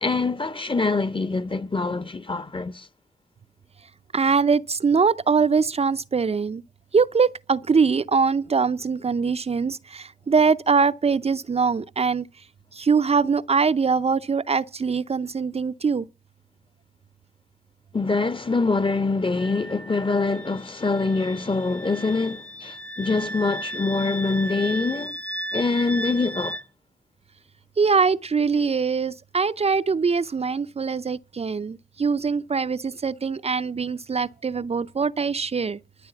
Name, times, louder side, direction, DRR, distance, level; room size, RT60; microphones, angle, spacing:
voice 1, 0.0-2.9 17.9-25.2 25.5-26.6, left 3 dB, 35° left, 1.2 m, -24 dB
voice 2, 4.1-6.6 6.9-12.3 12.7-16.1 27.8-35.8, right 5 dB, 45° right, 0.6 m, -22 dB
Wind instrument woodwind instrument, 19.4-26.6, right 1 dB, 5° left, 0.7 m, -35 dB
13.5 x 7.4 x 6.9 m
supercardioid pair, 40°, 15 cm